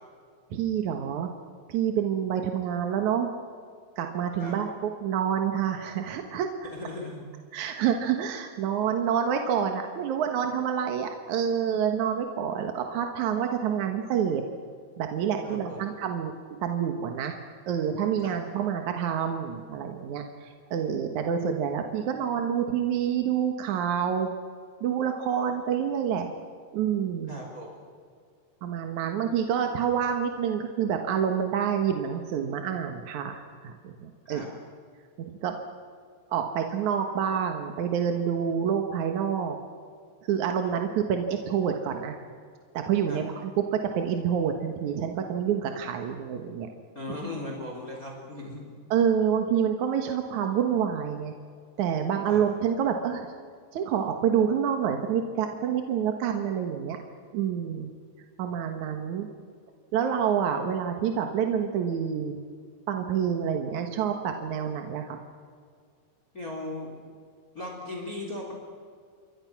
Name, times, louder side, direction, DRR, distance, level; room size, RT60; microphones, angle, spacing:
voice 1, 0.5-1.3 1.7-3.3 4.0-6.7 7.5-14.4 15.0-16.3 16.6-17.4 17.7-24.3 24.8-26.3 26.7-27.4 28.6-34.4 35.4-35.6 36.3-39.6 40.3-42.2 42.7-46.7 48.9-51.3 51.8-53.3 53.7-57.0 57.3-57.9 58.4-59.3 59.9-62.4 62.9-65.2, right 8 dB, 65° right, 4 dB, 2.1 m, -27 dB
voice 2, 6.6-7.3 15.4-15.9 18.2-18.4 27.3-27.8 34.3-34.5 43.1-43.2 46.9-48.6 52.3-52.4 66.3-66.9 67.5-68.5, left 1 dB, 20° left, 0 dB, 3.6 m, -37 dB
28.0 x 23.0 x 6.1 m, 2.1 s
omnidirectional pair, 5.0 m